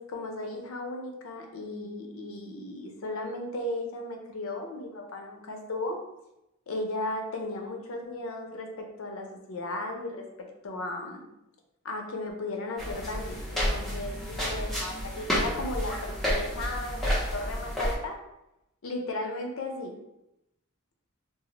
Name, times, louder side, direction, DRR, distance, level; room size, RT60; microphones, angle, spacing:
voice 1, 0.0-6.0 6.7-10.3 10.6-11.2 11.8-18.2 18.8-19.9, left 2 dB, 80° left, 3 dB, 0.6 m, -35 dB
sound 1, 12.8-18.0, equal, ahead, 0.6 m, -30 dB
2.4 x 2.0 x 3.9 m, 0.88 s
head